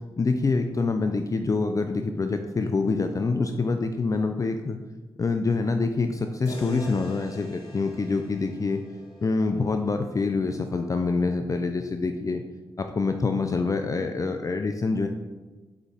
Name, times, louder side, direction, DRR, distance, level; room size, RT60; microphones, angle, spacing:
voice 1, 0.2-4.8 5.2-8.8 9.2-12.4 12.8-15.1, left 3 dB, 35° left, 6 dB, 0.5 m, -26 dB
sound 1, 6.5-10.5, equal, 75° left, 1.6 m, -45 dB
5.0 x 4.8 x 4.2 m, 1.3 s
supercardioid pair, 45°, 10 cm